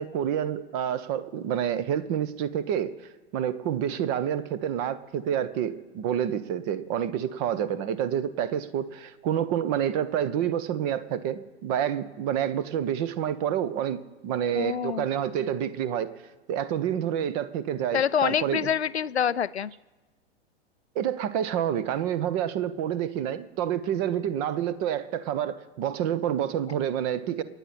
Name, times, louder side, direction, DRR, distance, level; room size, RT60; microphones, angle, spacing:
voice 1, 0.0-2.9 3.3-16.1 16.5-18.7 20.9-27.4, right 9 dB, 35° right, 16 dB, 0.9 m, -28 dB
voice 2, 14.5-15.1 17.9-19.7, left 8 dB, 80° left, 17 dB, 0.5 m, -26 dB
27.5 x 9.8 x 4.3 m, 1.2 s
figure-of-eight pair, 100°, 32 cm